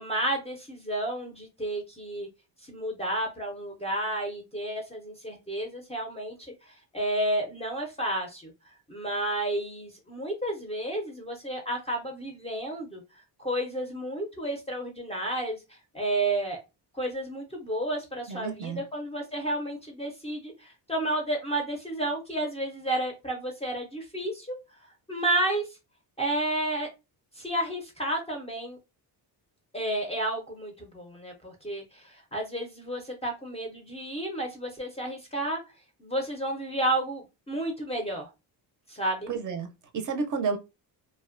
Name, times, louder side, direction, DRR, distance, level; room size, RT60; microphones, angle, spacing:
voice 1, 0.0-2.3 2.6-8.5 8.9-13.0 13.4-16.6 16.9-24.6 25.1-25.6 26.2-26.9 27.4-28.8 29.7-35.6 36.0-38.3 38.9-39.3, right 1 dB, 15° left, 0.4 m, -31 dB
voice 2, 18.3-18.8 39.3-40.6, right 5 dB, 50° right, 0.4 m, -31 dB
2.5 x 2.1 x 2.4 m
cardioid pair, 160°, 42 cm